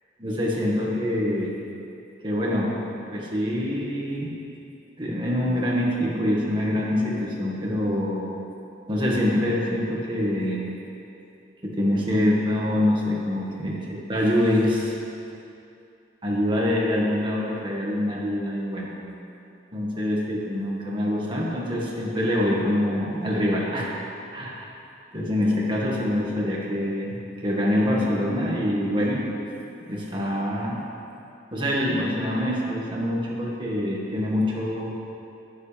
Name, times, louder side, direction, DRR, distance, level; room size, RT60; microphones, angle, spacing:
voice 1, 0.2-1.6 2.2-4.3 5.0-8.3 8.9-10.6 11.6-14.9 16.2-18.9 19.7-23.9 24.3-24.7 25.1-27.2 27.4-29.2 29.9-30.8 31.5-34.9, left 1 dB, 25° right, -4 dB, 1.9 m, -25 dB
19.0 x 7.5 x 3.5 m, 2.7 s
head